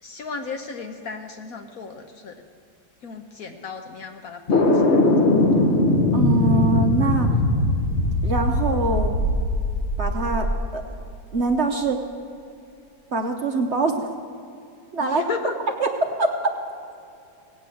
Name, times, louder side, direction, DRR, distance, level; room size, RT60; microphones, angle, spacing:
voice 1, 0.0-2.3 3.0-5.2 15.0-15.5, left 5 dB, 60° left, 5 dB, 1.1 m, -34 dB
sound 1, 4.5-10.6, left 2 dB, 40° left, 1.4 m, -20 dB
voice 2, 6.1-7.3 8.2-9.2 10.0-10.5 10.7-10.8 11.3-12.0 13.1-14.1 14.9-15.3 15.8-15.9 16.2-16.3, right 3 dB, 50° right, 3 dB, 0.8 m, -23 dB
17.5 x 8.5 x 7.6 m, 2.6 s
omnidirectional pair, 2.1 m